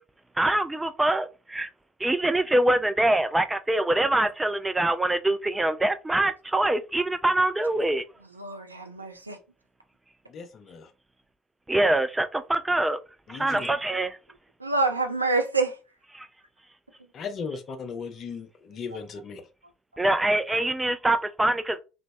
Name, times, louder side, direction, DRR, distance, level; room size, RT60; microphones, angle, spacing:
voice 1, 0.4-1.7 2.0-8.0 11.7-13.0 13.3-14.2 16.1-16.3 20.0-21.8, right 1 dB, 10° right, 0.4 m, -24 dB
voice 2, 8.4-9.4 14.6-15.8, right 3 dB, 85° right, 0.3 m, -26 dB
voice 3, 10.3-10.9 13.3-13.7 17.1-19.4, left 5 dB, 40° left, 0.5 m, -37 dB
3.0 x 2.0 x 2.6 m
figure-of-eight pair, 60°, 0 cm